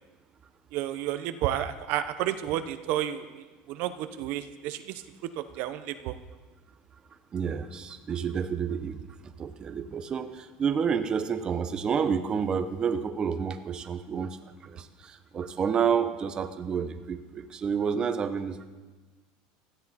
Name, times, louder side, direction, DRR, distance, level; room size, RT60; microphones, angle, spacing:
voice 1, 0.7-3.3 3.7-4.9 5.4-6.1, right 12 dB, 60° right, 10 dB, 0.8 m, -31 dB
voice 2, 7.3-14.4 14.6-18.7, right 7 dB, 25° right, 8 dB, 0.8 m, -29 dB
17.0 x 13.0 x 4.2 m, 1.3 s
supercardioid pair, 145°, 3 cm